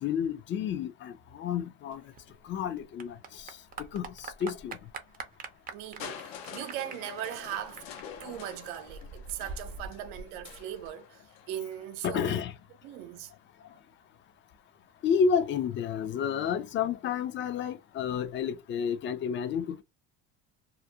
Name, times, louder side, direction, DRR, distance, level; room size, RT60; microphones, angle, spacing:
voice 1, 0.0-2.0 2.4-3.6 3.9-4.8 6.1-6.2 12.0-12.5 15.0-19.8, left 7 dB, 35° left, 0.4 m, -30 dB
Clapping / Applause, 1.9-10.9, right 4 dB, 25° right, 0.4 m, -45 dB
voice 2, 5.7-7.8 8.2-12.4 12.8-13.3, right 11 dB, 85° right, 0.6 m, -39 dB
Crushing, 6.0-11.9 12.9-13.0, left 8 dB, 85° left, 0.8 m, -46 dB
2.4 x 2.1 x 2.7 m
cardioid pair, 115°, 35 cm